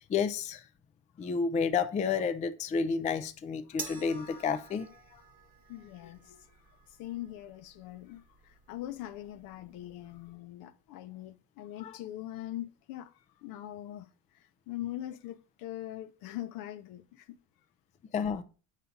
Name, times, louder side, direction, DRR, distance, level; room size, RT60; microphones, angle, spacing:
voice 1, 0.1-0.6 1.2-4.9 11.8-11.9 18.1-18.4, left 5 dB, 20° left, 0.4 m, -30 dB
sound 1, 3.8-10.3, right 4 dB, 20° right, 1.1 m, -50 dB
voice 2, 5.7-6.5 7.0-13.1 13.4-14.1 14.7-17.4, left 13 dB, 60° left, 0.8 m, -42 dB
8.2 x 5.7 x 3.8 m
cardioid pair, 145°, 39 cm